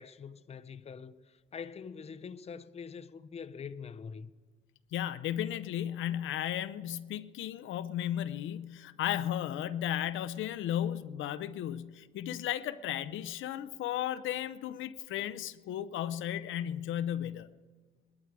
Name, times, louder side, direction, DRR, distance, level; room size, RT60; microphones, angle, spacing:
voice 1, 0.0-4.3, left 6 dB, 30° left, 0.6 m, -44 dB
voice 2, 4.9-17.5, left 11 dB, 80° left, 0.6 m, -35 dB
20.5 x 12.5 x 4.7 m
cardioid pair, 90°, 20 cm